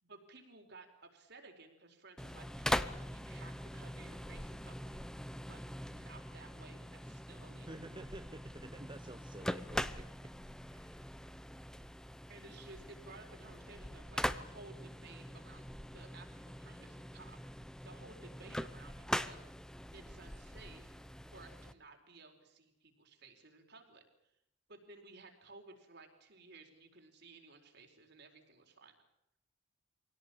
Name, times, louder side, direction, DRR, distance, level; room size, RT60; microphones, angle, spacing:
voice 1, 0.0-5.6 5.9-7.7 12.3-17.4 17.8-19.4 19.9-20.8 21.3-24.0 24.7-28.9, right 3 dB, 60° right, 4 dB, 4.5 m, -56 dB
sound 1, 2.2-21.7, equal, 5° left, 0.8 m, -42 dB
voice 2, 7.6-10.1 10.7-11.1, right 1 dB, 25° right, 8 dB, 0.9 m, -50 dB
24.5 x 18.0 x 8.8 m, 0.81 s
head